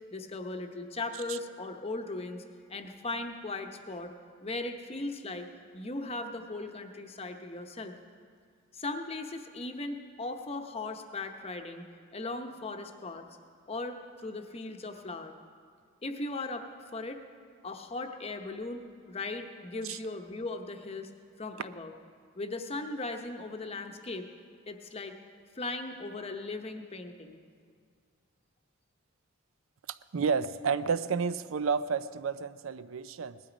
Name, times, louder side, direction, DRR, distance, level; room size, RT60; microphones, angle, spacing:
voice 1, 0.1-2.4 2.7-4.1 4.4-8.0 8.7-11.9 12.1-13.3 13.7-15.3 16.0-17.2 17.6-21.1 21.4-21.9 22.3-24.3 24.7-25.2 25.5-27.4, left 2 dB, 30° left, 5 dB, 0.8 m, -38 dB
voice 2, 29.9-33.4, right 5 dB, 75° right, 15 dB, 0.5 m, -31 dB
19.0 x 12.0 x 5.0 m, 2.1 s
head